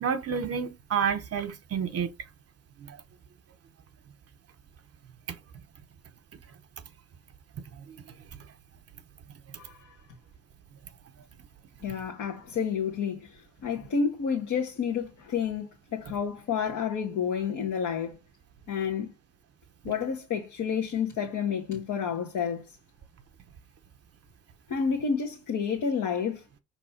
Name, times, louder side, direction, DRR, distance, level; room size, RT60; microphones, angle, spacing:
voice 1, 0.0-2.1 2.8-3.0 5.3-5.4 7.7-8.0 9.5-9.6, right 7 dB, 50° right, 0.8 m, -30 dB
voice 2, 9.6-10.0 11.8-18.2 18.7-19.1 19.8-22.6 24.7-26.4, left 6 dB, 80° left, 1.3 m, -30 dB
5.8 x 3.0 x 5.6 m
cardioid pair, 90°, 30 cm